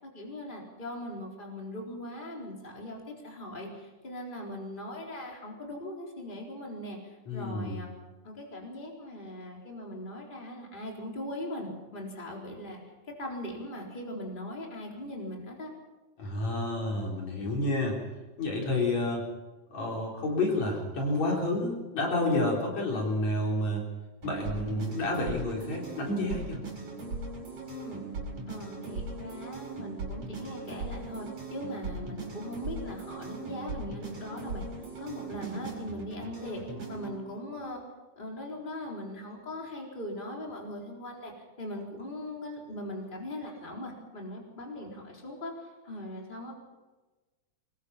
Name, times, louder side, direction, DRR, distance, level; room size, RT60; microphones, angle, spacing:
voice 1, 0.0-7.9 8.2-12.8 13.2-15.7 27.7-28.0 28.5-34.7 35.0-37.8 38.2-41.3 41.6-46.5, left 1 dB, 15° left, -1 dB, 4.1 m, -40 dB
voice 2, 7.3-7.8 16.2-18.0 18.4-19.2 19.7-23.8 24.2-26.6, left 2 dB, 60° left, -1 dB, 5.3 m, -29 dB
sound 1, 24.2-37.1, right 3 dB, 55° right, 6.2 m, -39 dB
24.0 x 21.0 x 5.9 m, 1.2 s
omnidirectional pair, 3.5 m